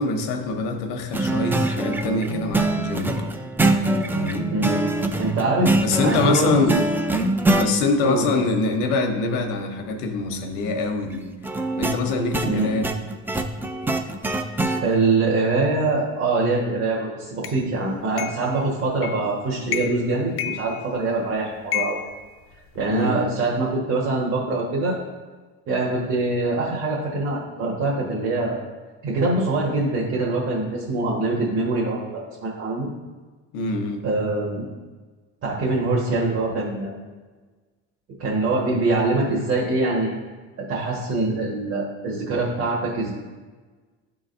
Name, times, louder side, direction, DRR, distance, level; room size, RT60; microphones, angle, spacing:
voice 1, 0.0-3.2 4.1-4.5 5.8-6.8 7.6-11.3 11.8-12.9 22.9-23.3 33.5-34.0, left 3 dB, 85° left, 5 dB, 1.0 m, -24 dB
sound 1, 1.1-7.7 11.4-14.8, right 2 dB, 5° right, 0.4 m, -24 dB
voice 2, 4.5-4.8 5.2-5.7 6.0-6.7 8.0-8.3 12.4-12.7 14.8-22.0 22.7-25.0 25.7-28.6 29.0-32.9 34.0-34.7 35.4-37.0 38.2-40.1 40.7-43.1, right 2 dB, 45° right, -4 dB, 1.5 m, -24 dB
sound 2, 17.4-17.6 18.2-18.5 19.0-19.3 19.7-20.1 20.4-21.2 21.7-23.0, left 10 dB, 45° left, 0.6 m, -31 dB
11.5 x 3.9 x 2.6 m, 1.4 s
cardioid pair, 120°, 32 cm